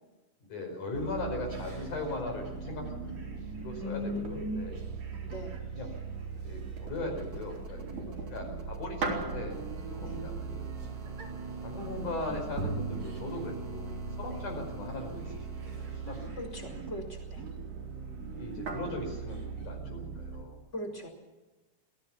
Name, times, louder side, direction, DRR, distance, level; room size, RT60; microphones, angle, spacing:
voice 1, 0.4-4.8 5.7-5.9 6.4-10.6 11.6-16.4 18.3-20.6, left 2 dB, 60° left, 3 dB, 6.5 m, -39 dB
sound 1, 0.9-20.4, right 5 dB, 80° right, 5.6 m, -41 dB
voice 2, 3.8-4.9 5.2-5.6 8.1-8.2 10.0-10.2 14.3-14.4 16.4-17.4 20.7-21.1, left 1 dB, 20° left, 3 dB, 4.9 m, -39 dB
sound 2, 4.7-19.5, right 3 dB, 60° right, 4.7 m, -42 dB
sound 3, 6.3-16.3 17.7-17.8, right 3 dB, 40° right, 2.8 m, -54 dB
22.5 x 16.0 x 7.2 m, 1.1 s
omnidirectional pair, 4.0 m